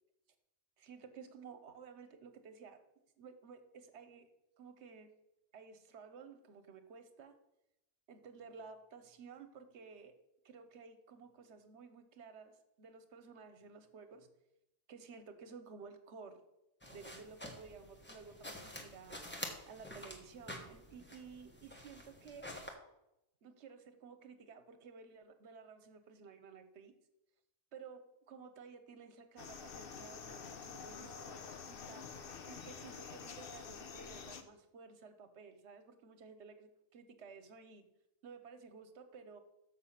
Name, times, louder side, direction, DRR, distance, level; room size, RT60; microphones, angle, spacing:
voice 1, 0.8-2.8 3.2-4.3 4.6-5.1 5.5-7.3 8.1-10.1 10.4-14.3 14.9-16.4 16.9-19.2 19.7-22.5 23.4-26.9 27.7-32.0 32.4-37.9 38.2-39.4, right 5 dB, 70° right, 9 dB, 1.2 m, -54 dB
sound 1, 16.8-22.7, left 1 dB, 10° left, 1.1 m, -49 dB
sound 2, 29.4-34.4, left 6 dB, 55° left, 0.9 m, -48 dB
6.8 x 6.4 x 5.7 m, 0.86 s
omnidirectional pair, 1.2 m